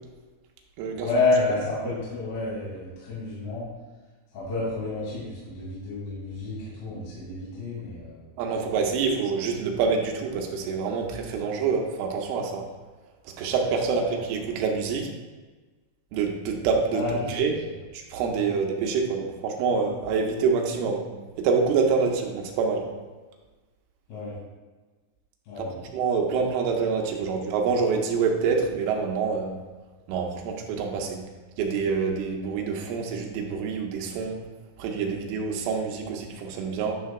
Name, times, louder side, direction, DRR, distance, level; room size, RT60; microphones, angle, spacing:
voice 1, 1.0-3.7 4.3-8.2 14.0-14.2 16.9-17.4 24.1-24.3 25.5-25.8, left 3 dB, 55° left, -8 dB, 3.8 m, -29 dB
voice 2, 8.4-12.7 13.3-15.1 16.1-17.0 17.3-17.6 17.9-21.1 21.4-22.9 25.6-25.7 25.9-29.6 30.1-31.2 31.6-34.4 34.8-37.0, right 5 dB, 90° right, 1 dB, 3.3 m, -26 dB
11.0 x 6.4 x 2.2 m, 1.3 s
omnidirectional pair, 5.6 m